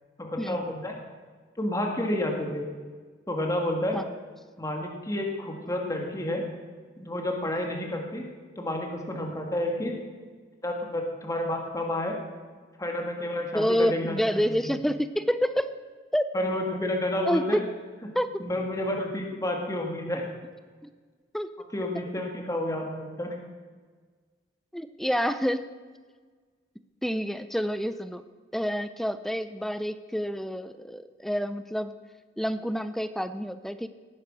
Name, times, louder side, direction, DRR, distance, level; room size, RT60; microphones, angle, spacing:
voice 1, 0.2-1.0 1.6-2.7 3.3-4.0 4.6-6.4 7.0-8.3 8.6-10.0 10.6-12.2 12.8-14.7 16.3-17.6 18.4-20.3 21.7-23.3, left 1 dB, 20° left, 1 dB, 1.8 m, -30 dB
voice 2, 13.5-15.7 16.1-16.2 17.3-17.7 18.1-18.4 21.3-21.5 24.7-25.7 27.0-28.2 28.5-31.9 32.4-33.9, equal, ahead, 12 dB, 0.4 m, -28 dB
18.0 x 9.7 x 6.1 m, 1.5 s
head